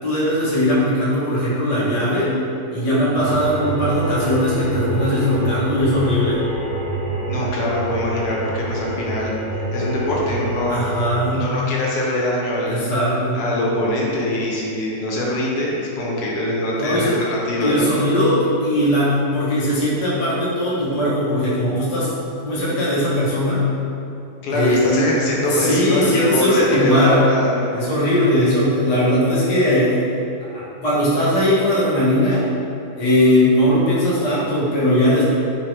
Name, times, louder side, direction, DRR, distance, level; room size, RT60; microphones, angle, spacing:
voice 1, 0.0-2.3 2.7-6.4 10.7-11.7 12.7-13.4 16.8-17.2 17.6-22.1 22.4-23.7 24.5-25.1 25.4-27.3 27.7-30.0 30.5-32.5 32.9-35.2, left 1 dB, 55° left, -9 dB, 0.4 m, -19 dB
sound 1, 3.1-11.3, right 1 dB, 65° right, 1.1 m, -26 dB
voice 2, 7.3-9.3 9.7-10.8 11.3-13.0 13.3-17.9 24.4-27.7, left 1 dB, 75° left, -4 dB, 1.1 m, -23 dB
3.2 x 2.0 x 3.0 m, 2.7 s
omnidirectional pair, 1.7 m